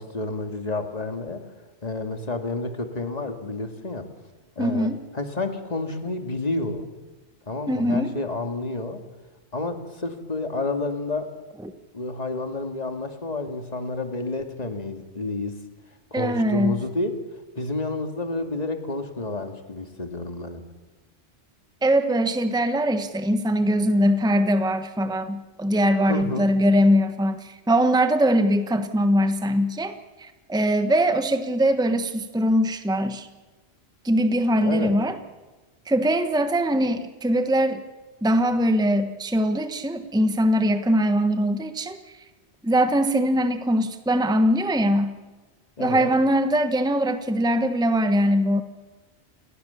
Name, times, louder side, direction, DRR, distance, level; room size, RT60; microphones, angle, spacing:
voice 1, 0.0-1.5 1.8-4.1 4.6-6.9 7.5-9.0 9.5-11.3 11.9-15.6 16.1-17.2 17.6-20.6 26.1-26.5 34.6-35.0 45.8-46.1, left 2 dB, 35° left, 6 dB, 2.3 m, -30 dB
voice 2, 4.6-5.0 7.7-8.2 11.6-11.7 16.1-16.8 21.8-29.9 30.2-33.3 34.0-35.1 35.9-37.8 38.2-42.0 42.6-45.2 45.8-48.6, equal, 5° right, 9 dB, 1.2 m, -22 dB
29.5 x 19.5 x 7.1 m, 1.2 s
omnidirectional pair, 1.2 m